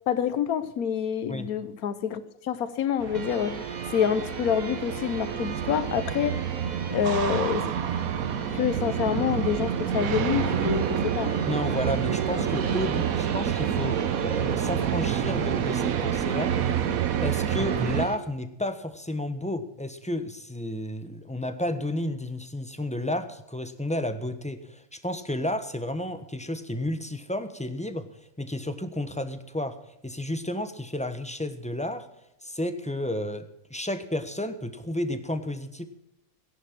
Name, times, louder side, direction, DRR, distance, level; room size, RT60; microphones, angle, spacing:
voice 1, 0.1-3.7 3.9-6.4 6.9-7.7 8.5-11.3, left 8 dB, 90° left, 13 dB, 1.3 m, -27 dB
sound 1, 3.0-18.1, right 9 dB, 75° right, 1.3 m, -28 dB
sound 2, 3.1-18.2, right 5 dB, 35° right, 1.2 m, -36 dB
voice 2, 11.5-16.8 17.2-28.1 28.4-29.8 30.0-32.1 32.4-35.9, left 1 dB, 5° left, 9 dB, 1.1 m, -32 dB
16.5 x 11.0 x 6.1 m, 0.87 s
omnidirectional pair, 1.5 m